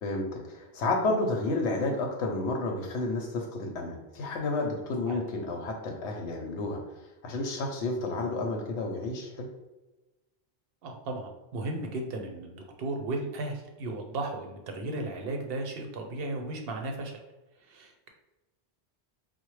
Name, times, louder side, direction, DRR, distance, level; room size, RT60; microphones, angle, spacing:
voice 1, 0.0-6.8 7.2-9.5, left 2 dB, 80° left, 1 dB, 0.9 m, -31 dB
voice 2, 10.8-17.1 17.7-18.1, right 2 dB, 65° right, 3 dB, 0.7 m, -35 dB
4.2 x 2.0 x 3.1 m, 1.1 s
omnidirectional pair, 1.2 m